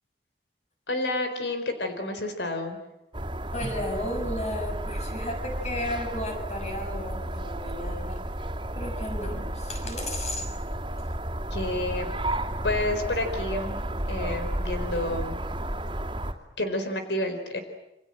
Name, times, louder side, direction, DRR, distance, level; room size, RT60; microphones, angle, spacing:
voice 1, 0.9-2.8 11.5-12.1 12.6-13.8 14.1-15.4 16.6-17.6, left 2 dB, 85° left, 7 dB, 4.4 m, -29 dB
sound 1, 3.1-16.3, right 1 dB, 25° right, 2.9 m, -32 dB
voice 2, 3.5-10.5, left 1 dB, 40° left, 5 dB, 6.4 m, -34 dB
28.0 x 26.5 x 7.8 m, 0.91 s
head